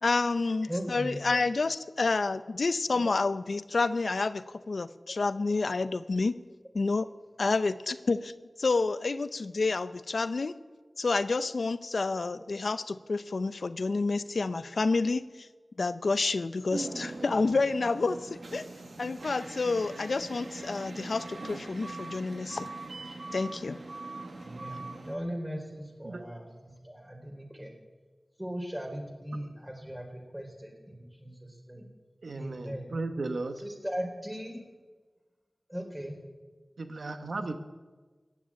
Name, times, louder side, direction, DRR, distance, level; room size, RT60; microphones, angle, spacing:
voice 1, 0.0-6.4 6.7-7.1 7.4-8.3 8.6-10.5 11.0-15.5 15.8-18.7 19.0-22.7 23.3-23.8, left 3 dB, 85° left, 13 dB, 0.5 m, -29 dB
voice 2, 0.7-1.2 24.4-26.4 26.8-27.7 28.4-31.3 31.7-31.8 32.4-32.9 33.8-34.6 35.7-36.2, equal, 15° right, 2 dB, 4.2 m, -38 dB
sound 1, 16.7-25.2, right 2 dB, 75° right, 1.5 m, -41 dB
voice 3, 32.2-33.6 36.8-37.6, right 3 dB, 90° right, 7 dB, 1.0 m, -35 dB
16.0 x 10.0 x 8.7 m, 1.3 s
wide cardioid pair, 50°, 0 cm